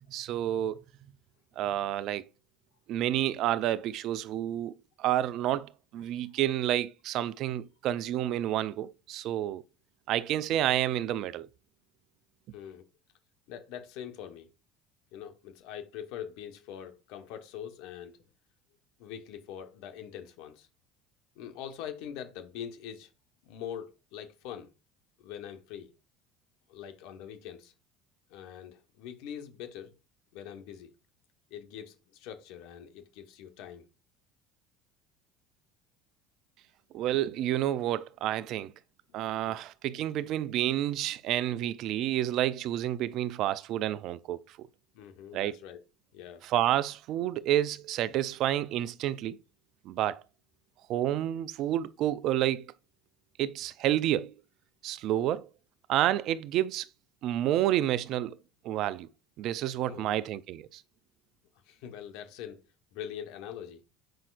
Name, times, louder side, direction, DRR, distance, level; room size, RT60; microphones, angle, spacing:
voice 1, 0.1-0.8 1.6-2.2 2.9-9.6 10.1-11.5 36.9-38.7 39.1-44.7 45.3-45.6 46.4-49.4 49.8-50.2 50.9-52.7 53.4-54.3 54.8-55.5 55.9-56.9 57.2-58.4 58.6-59.1 59.4-60.8, right 12 dB, 60° right, 0.5 m, -29 dB
voice 2, 6.0-6.4 12.5-12.8 13.5-14.5 15.1-18.2 19.0-20.7 21.3-23.1 23.4-24.7 25.2-25.9 26.7-27.7 28.3-30.0 30.3-30.9 31.5-33.9 39.1-39.6 44.9-45.8 46.1-46.4 59.9-60.2 61.6-62.6 62.9-63.8, left 9 dB, 70° left, 1.3 m, -43 dB
7.7 x 5.6 x 2.5 m
hypercardioid pair, 70°, 0 cm